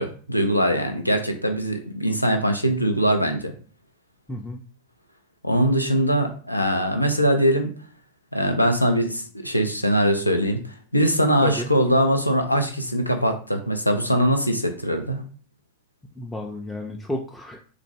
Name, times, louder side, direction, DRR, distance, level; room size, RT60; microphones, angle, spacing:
voice 1, 0.0-3.5 5.4-7.7 8.3-10.6 10.9-15.2, equal, 85° left, 5 dB, 0.5 m, -22 dB
voice 2, 4.3-4.6 11.4-11.7 16.2-17.6, left 1 dB, 5° left, 0 dB, 0.4 m, -31 dB
3.3 x 2.4 x 3.0 m, 0.43 s
figure-of-eight pair, 90°, 0 cm